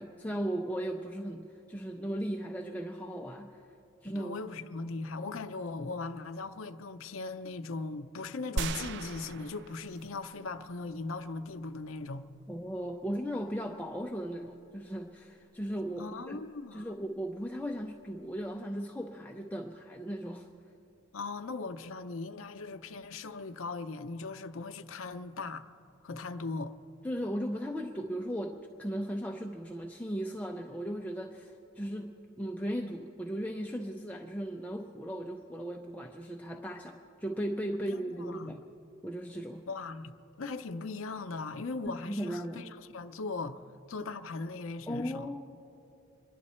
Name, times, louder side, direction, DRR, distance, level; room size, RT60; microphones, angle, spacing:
voice 1, 0.0-3.6 4.0-4.3 12.5-16.4 16.7-20.5 27.0-38.6 39.0-39.6 41.8-42.7 44.9-45.4, equal, 10° left, 0.5 m, -37 dB
voice 2, 4.0-12.3 16.0-17.0 21.1-25.6 26.0-26.7 37.9-38.6 39.7-43.6 43.9-45.3, left 3 dB, 90° left, 0.6 m, -39 dB
sound 1, 8.6-10.3 10.8-10.9, right 4 dB, 60° right, 0.4 m, -37 dB
25.5 x 11.0 x 4.3 m
head